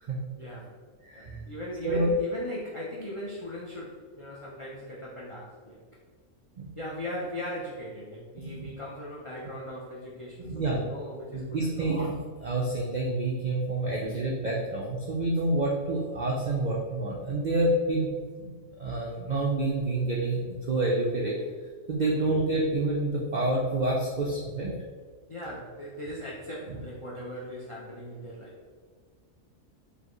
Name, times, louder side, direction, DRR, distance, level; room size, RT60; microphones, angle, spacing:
voice 1, 0.3-0.7 1.1-5.8 6.8-11.9 22.0-22.2 25.3-28.8, left 1 dB, 40° left, -5 dB, 0.4 m, -39 dB
voice 2, 1.0-1.4 1.8-2.1 6.6-6.7 8.4-8.7 10.4-10.8 11.3-18.1 18.4-18.5 18.8-21.4 21.9-24.7, right 2 dB, 65° right, -3 dB, 0.4 m, -28 dB
4.8 x 2.8 x 3.0 m, 1.5 s
omnidirectional pair, 1.4 m